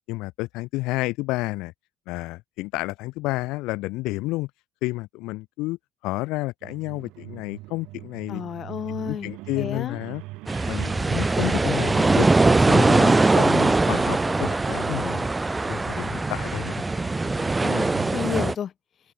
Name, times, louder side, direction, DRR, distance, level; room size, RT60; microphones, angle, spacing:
voice 1, 0.1-1.7 2.1-4.5 4.8-5.8 6.0-8.4 9.1-10.2 10.7-15.3 15.7-16.8, left 21 dB, 85° left, 0.6 m, -30 dB
sound 1, 6.6-18.4, right 21 dB, 85° right, 6.4 m, -41 dB
voice 2, 8.3-10.0 17.6-18.7, left 9 dB, 50° left, 3.0 m, -31 dB
sound 2, 10.5-18.5, right 3 dB, 15° right, 1.1 m, -21 dB
cardioid pair, 100°, 0 cm